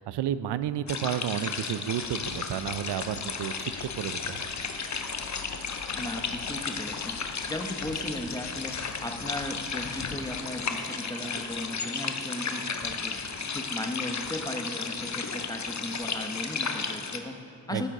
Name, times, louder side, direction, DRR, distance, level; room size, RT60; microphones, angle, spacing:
voice 1, 0.0-4.5 17.7-17.9, right 10 dB, 60° right, 14 dB, 0.5 m, -32 dB
sound 1, 0.9-17.2, left 5 dB, 35° left, 0.9 m, -34 dB
sound 2, 2.0-10.5, left 7 dB, 65° left, 0.8 m, -47 dB
voice 2, 5.9-13.2 13.5-17.9, left 1 dB, 10° left, 5 dB, 1.0 m, -37 dB
13.5 x 7.5 x 3.8 m, 2.5 s
supercardioid pair, 40°, 47 cm